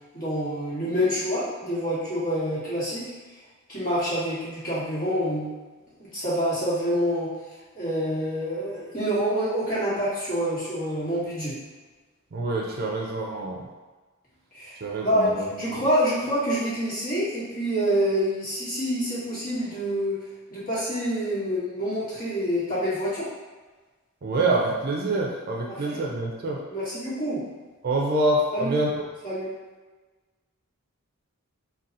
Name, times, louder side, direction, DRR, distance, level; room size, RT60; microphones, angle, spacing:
voice 1, 0.1-3.0 3.7-5.5 6.0-7.3 7.7-11.5 14.5-14.7 15.0-15.3 15.6-20.2 20.5-23.3 25.8-26.0 26.7-27.4 28.5-28.8 29.2-29.5, equal, 40° left, -10 dB, 1.3 m, -27 dB
voice 2, 12.3-13.6 14.8-15.8 24.2-26.6 27.8-29.0, right 2 dB, 45° right, -1 dB, 0.4 m, -26 dB
2.8 x 2.3 x 3.7 m, 1.3 s
head